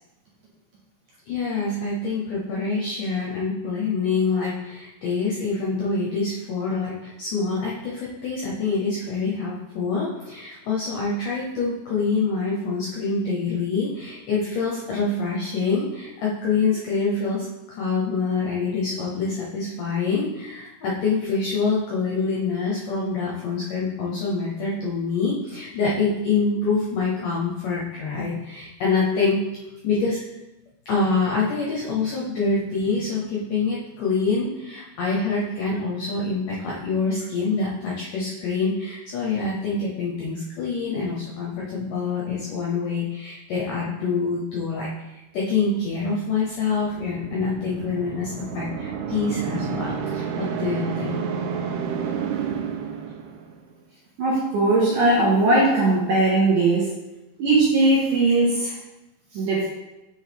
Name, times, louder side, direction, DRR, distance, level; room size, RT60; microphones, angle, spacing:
voice 1, 1.3-17.5 17.8-29.4 29.8-30.2 30.9-51.2, left 4 dB, 80° left, -4 dB, 1.9 m, -26 dB
sound 1, 46.7-53.7, right 6 dB, 85° right, 2.7 m, -30 dB
voice 2, 54.2-56.9 57.4-58.7 59.3-59.7, right 2 dB, 70° right, -6 dB, 2.1 m, -19 dB
7.7 x 4.0 x 3.4 m, 0.98 s
omnidirectional pair, 4.8 m